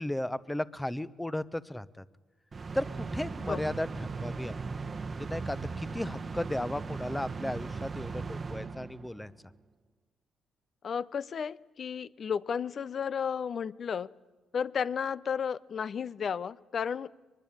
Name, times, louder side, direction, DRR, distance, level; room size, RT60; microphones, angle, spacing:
voice 1, 0.0-2.0 2.7-4.5 5.1-9.3, left 1 dB, 10° left, 16 dB, 0.9 m, -35 dB
sound 1, 2.5-9.3, right 4 dB, 35° right, 1.1 m, -38 dB
voice 2, 10.8-14.1 14.5-17.1, left 7 dB, 50° left, 18 dB, 0.7 m, -33 dB
23.0 x 21.5 x 8.9 m, 1.3 s
cardioid pair, 90°, 0 cm